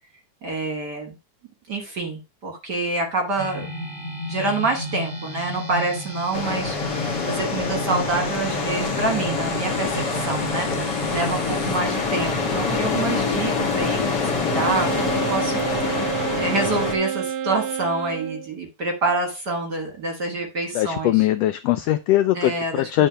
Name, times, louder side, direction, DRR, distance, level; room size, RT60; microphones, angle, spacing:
voice 1, 0.4-1.1 1.7-3.7 4.3-15.6 16.3-21.3 22.3-23.1, right 3 dB, 45° right, 3 dB, 1.4 m, -27 dB
sound 1, 3.4-11.8, equal, 10° left, 1.4 m, -32 dB
sound 2, 6.3-16.9, left 4 dB, 45° left, 1.6 m, -25 dB
Wind instrument woodwind instrument, 14.5-18.5, right 9 dB, 75° right, 1.3 m, -29 dB
voice 2, 20.7-23.1, left 14 dB, 85° left, 11 dB, 1.4 m, -21 dB
10.0 x 3.8 x 5.7 m, 0.27 s
omnidirectional pair, 3.4 m